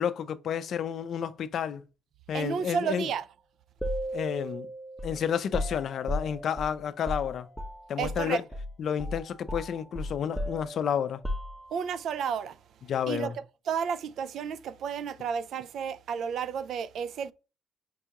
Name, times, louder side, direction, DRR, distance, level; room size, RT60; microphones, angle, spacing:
voice 1, 0.0-1.8 2.3-3.1 4.1-4.7 5.0-7.5 7.9-8.4 8.8-11.2 12.9-13.3, left 8 dB, 65° left, 0.4 m, -30 dB
voice 2, 2.3-3.3 8.0-8.4 11.7-12.5 13.1-17.3, right 7 dB, 70° right, 0.3 m, -32 dB
sound 1, 3.8-8.2 8.5-8.7 9.0-12.0, equal, 5° right, 0.6 m, -35 dB
5.3 x 2.3 x 2.9 m
cardioid pair, 90°, 0 cm